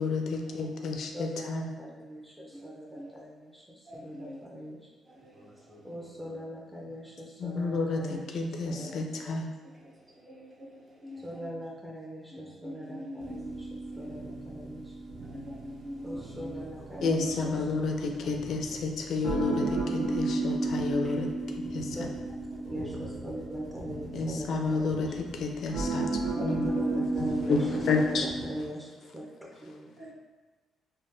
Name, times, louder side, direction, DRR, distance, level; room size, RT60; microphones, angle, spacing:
voice 1, 0.0-1.7 7.4-9.5 17.0-22.1 24.1-26.7 27.5-28.3, left 4 dB, 70° left, 3 dB, 0.4 m, -30 dB
voice 2, 1.1-4.9 5.3-9.5 11.2-14.9 16.0-18.6 19.6-19.7 21.0-21.1 21.9-25.2 26.6-30.1, equal, 10° right, -4 dB, 0.4 m, -42 dB
voice 3, 3.9-4.4 5.0-5.9 8.0-8.2 8.7-8.9 9.8-11.5 12.3-13.4 13.9-14.1 15.2-16.6 16.9-17.5 20.2-20.5 21.9-22.0 25.9-26.1 26.3-26.8 30.0-30.1, equal, 40° right, -4 dB, 0.7 m, -44 dB
sound 1, 13.2-28.5, right 2 dB, 85° right, 0.6 m, -34 dB
3.6 x 2.2 x 2.5 m, 1.3 s
cardioid pair, 90°, 0 cm